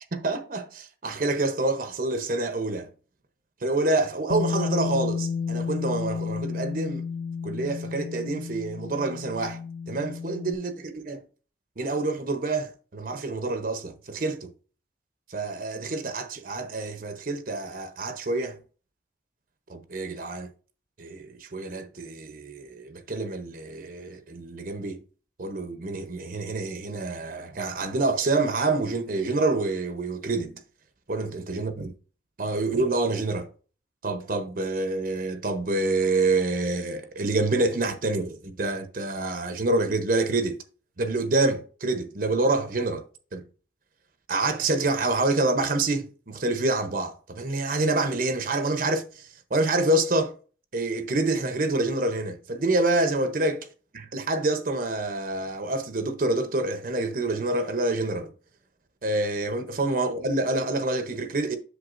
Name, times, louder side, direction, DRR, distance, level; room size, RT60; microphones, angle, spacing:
voice 1, 0.1-2.9 3.6-7.0 7.4-9.6 9.9-11.2 11.8-14.5 15.3-18.6 19.7-20.5 21.0-25.0 25.4-30.5 31.1-31.9 32.4-33.5 34.0-40.6 41.0-43.0 43.3-43.4 44.3-50.3 50.7-53.7 53.9-58.3 59.0-61.6, right 2 dB, 50° right, 0.8 m, -27 dB
Bass guitar, 4.3-10.6, left 6 dB, 55° left, 0.3 m, -31 dB
8.0 x 6.4 x 2.5 m
head